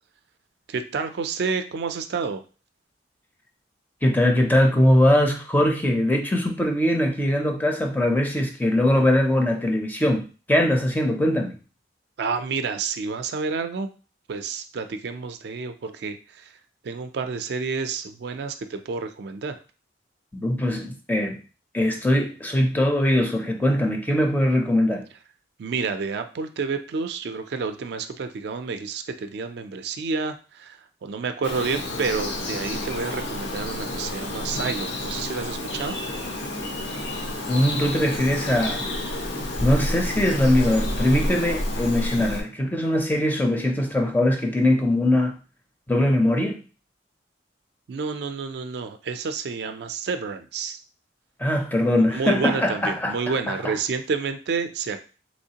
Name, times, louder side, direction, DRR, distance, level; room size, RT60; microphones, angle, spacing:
voice 1, 0.7-2.4 12.2-13.9 14.3-16.5 16.8-19.6 25.6-36.0 47.9-50.8 52.1-55.0, right 5 dB, 60° right, 0.4 m, -29 dB
voice 2, 4.0-11.6 20.3-21.4 21.7-25.0 37.5-38.9 39.6-45.4 45.9-46.6 51.4-53.2 53.5-53.7, left 1 dB, 10° left, 0.4 m, -21 dB
Bird vocalization bird call bird song, 31.4-42.4, left 1 dB, 85° left, 0.8 m, -29 dB
3.5 x 3.1 x 2.8 m
head